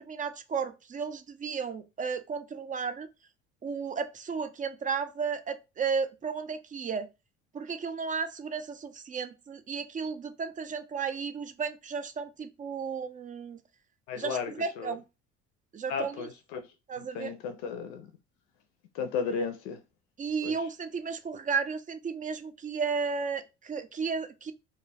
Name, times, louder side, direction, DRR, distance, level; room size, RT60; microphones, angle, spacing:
voice 1, 0.0-3.1 3.6-7.1 7.5-13.6 14.2-15.0 15.7-16.3 16.9-17.3 20.2-24.5, right 5 dB, 25° right, 0.3 m, -33 dB
voice 2, 14.1-15.0 15.9-16.7 17.0-18.1 18.9-19.8 20.4-20.6, left 6 dB, 75° left, 0.5 m, -34 dB
2.2 x 2.2 x 3.3 m
hypercardioid pair, 65°, 33 cm